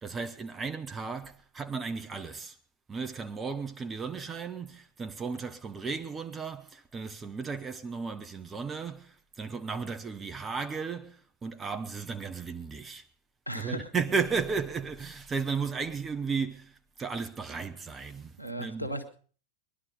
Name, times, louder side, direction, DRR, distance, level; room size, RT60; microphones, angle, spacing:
voice 1, 0.0-2.6 2.9-13.0 13.5-18.9, right 5 dB, 20° right, 1.1 m, -35 dB
voice 2, 13.5-13.9 18.4-19.1, right 1 dB, 90° right, 1.4 m, -36 dB
20.5 x 11.0 x 5.3 m
figure-of-eight pair, 90°, 0 cm